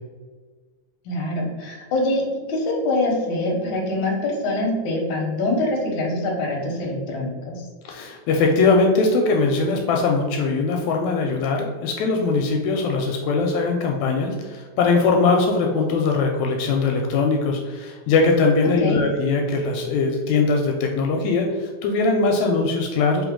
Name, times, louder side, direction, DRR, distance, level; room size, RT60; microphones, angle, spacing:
voice 1, 1.0-2.2 2.5-7.6 18.8-19.0, left 2 dB, 60° left, -1 dB, 1.4 m, -24 dB
voice 2, 7.9-23.3, left 3 dB, 80° left, 2 dB, 1.8 m, -21 dB
3.8 x 3.7 x 3.6 m, 1.4 s
omnidirectional pair, 3.4 m